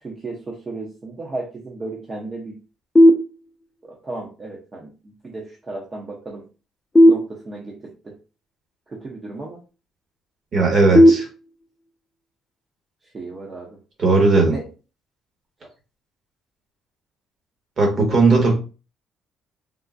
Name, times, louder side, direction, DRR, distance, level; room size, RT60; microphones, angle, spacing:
voice 1, 0.0-2.6 3.8-6.4 7.0-8.1 8.9-9.6 10.6-11.0 13.1-13.7 14.4-14.6, right 2 dB, 30° right, -2 dB, 0.7 m, -34 dB
sound 1, 3.0-3.9 6.9-8.0 11.0-12.0, equal, 20° left, 0.4 m, -16 dB
voice 2, 10.5-11.3 14.0-14.6 17.8-18.6, right 3 dB, 45° right, 2 dB, 1.2 m, -17 dB
3.6 x 2.1 x 2.5 m, 0.33 s
cardioid pair, 115°, 0 cm